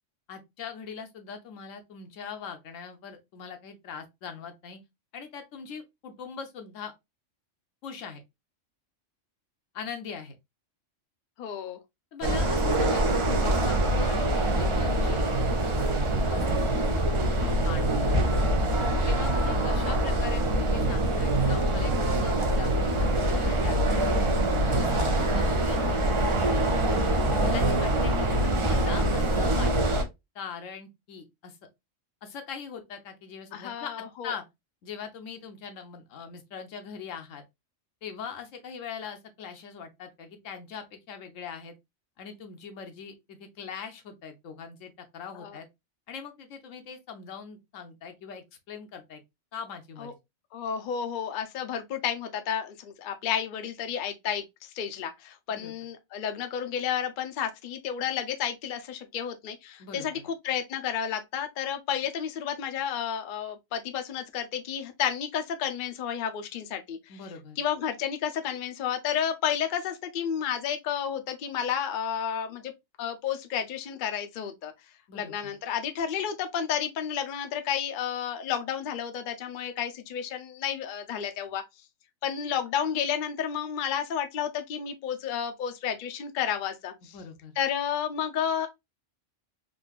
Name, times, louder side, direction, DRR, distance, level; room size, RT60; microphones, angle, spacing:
voice 1, 0.3-4.8 5.1-6.9 7.8-8.2 9.7-10.4 12.1-15.2 15.6-18.3 19.1-24.1 24.6-25.8 27.3-30.1 30.3-31.6 32.2-34.4 34.8-37.4 38.0-41.7 42.2-45.7 46.1-49.2 49.5-50.2 55.5-55.7 59.8-60.1 67.1-67.6 75.1-75.5 87.1-87.5, left 6 dB, 85° left, 1.1 m, -41 dB
voice 2, 11.4-11.8 33.5-34.3 45.3-45.6 50.0-50.1 50.5-54.4 54.7-67.0 67.6-72.7 73.0-74.7 75.1-81.6 82.2-87.2 87.6-88.7, left 8 dB, 55° left, 0.6 m, -31 dB
sound 1, 12.2-30.0, right 1 dB, 40° right, 0.4 m, -24 dB
3.7 x 2.6 x 2.3 m
omnidirectional pair, 1.3 m